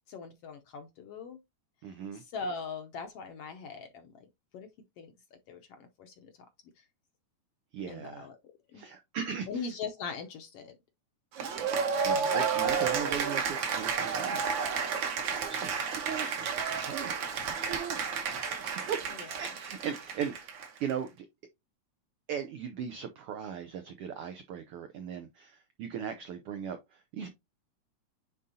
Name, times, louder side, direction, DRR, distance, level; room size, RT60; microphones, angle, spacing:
voice 1, 0.1-1.4 2.1-4.1 4.5-4.7 5.0-5.1 5.5-6.3 7.9-8.4 8.7-8.8 9.5-10.7, left 4 dB, 70° left, 1.5 m, -40 dB
voice 2, 1.8-2.2 7.7-8.3 8.7-9.6 11.9-14.8 15.3-17.2 17.5-18.0 18.8-20.5 20.8-21.3 22.3-27.3, right 8 dB, 90° right, 1.2 m, -38 dB
Cheering / Applause, 11.3-20.9, right 6 dB, 60° right, 1.3 m, -31 dB
9.4 x 3.7 x 2.7 m
omnidirectional pair, 3.4 m